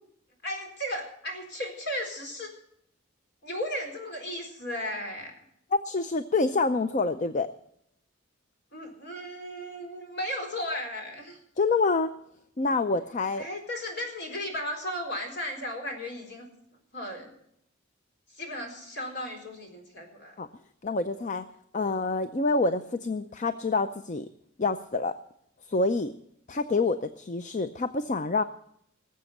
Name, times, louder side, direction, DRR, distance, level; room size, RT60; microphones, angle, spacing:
voice 1, 0.4-2.5 3.4-5.3 8.7-11.4 13.4-16.5 16.9-17.3 18.3-20.3, left 1 dB, 55° left, 3 dB, 4.1 m, -35 dB
voice 2, 5.8-7.5 11.6-12.1 12.6-13.5 20.4-20.5 20.8-21.4 21.7-24.3 24.6-25.2 25.7-26.1 26.5-28.4, left 3 dB, 40° left, 11 dB, 0.5 m, -27 dB
19.0 x 7.6 x 7.1 m, 0.74 s
head